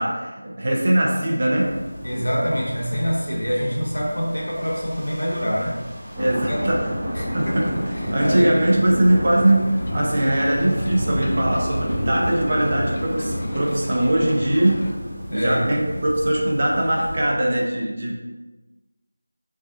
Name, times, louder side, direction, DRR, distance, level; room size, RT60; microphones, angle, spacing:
voice 1, 0.0-1.8 6.2-6.9 7.3-7.7 8.1-14.9 15.3-18.2, right 1 dB, 40° right, -3 dB, 0.7 m, -21 dB
sound 1, 1.5-17.3, equal, 5° right, 0.9 m, -30 dB
voice 2, 2.0-5.8 6.5-6.6 7.1-7.8 8.2-8.6 15.3-15.9, equal, 80° left, -4 dB, 1.2 m, -25 dB
sound 2, 7.3-14.9, left 1 dB, 45° left, 0.4 m, -36 dB
4.8 x 2.6 x 2.4 m, 1.2 s
figure-of-eight pair, 170°, 0 cm